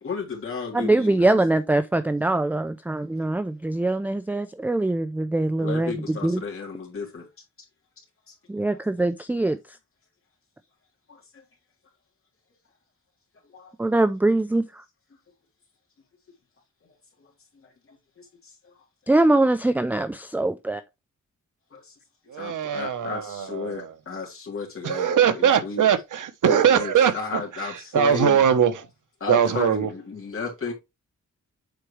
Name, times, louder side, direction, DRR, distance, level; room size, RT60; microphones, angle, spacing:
voice 1, 0.0-1.4 5.6-7.3 8.3-8.4 11.1-11.4 13.5-13.7 17.6-18.7 21.7-21.9 22.4-25.8 26.4-28.5 29.2-30.7, left 5 dB, 45° left, 2.9 m, -34 dB
voice 2, 0.7-6.4 8.5-9.8 13.8-14.8 19.1-20.8, right 2 dB, 5° right, 0.4 m, -23 dB
voice 3, 22.3-23.9 24.8-27.4 27.9-28.8 29.3-29.9, right 8 dB, 80° right, 1.0 m, -21 dB
7.7 x 4.8 x 3.1 m
wide cardioid pair, 170°, 30 cm